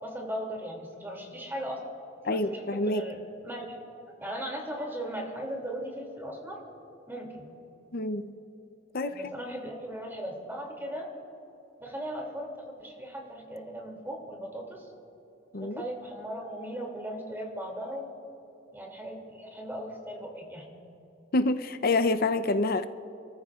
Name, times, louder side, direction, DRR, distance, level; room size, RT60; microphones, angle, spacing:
voice 1, 0.0-1.8 2.2-3.8 4.2-6.6 7.1-7.4 9.0-11.1 11.8-14.9 15.6-18.1 18.7-20.6, equal, 10° right, 0 dB, 2.6 m, -38 dB
voice 2, 2.2-3.0 7.9-8.3 8.9-9.1 15.5-15.8 21.3-22.9, left 2 dB, 50° left, 10 dB, 0.6 m, -27 dB
30.0 x 14.0 x 2.4 m, 2.9 s
head